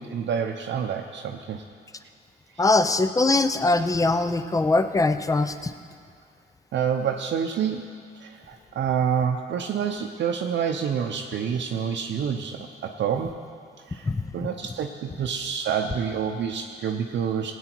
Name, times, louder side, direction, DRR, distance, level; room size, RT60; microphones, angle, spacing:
voice 1, 0.0-1.6 2.5-2.6 6.7-13.4 13.9-17.5, right 7 dB, 65° right, 1 dB, 0.7 m, -28 dB
voice 2, 2.6-5.7 14.1-14.3, left 2 dB, 15° left, 10 dB, 0.6 m, -22 dB
16.5 x 8.9 x 4.6 m, 2.1 s
cardioid pair, 90°, 20 cm